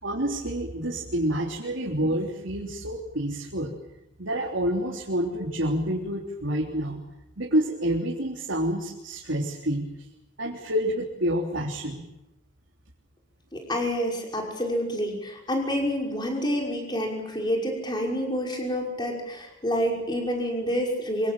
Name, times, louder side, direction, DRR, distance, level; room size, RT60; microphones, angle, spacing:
voice 1, 0.0-3.7 4.2-7.0 7.4-9.9 10.4-12.1, equal, 75° right, -3 dB, 3.6 m, -28 dB
voice 2, 13.5-21.3, equal, 20° left, 0 dB, 5.9 m, -28 dB
26.0 x 25.5 x 7.7 m, 0.91 s
head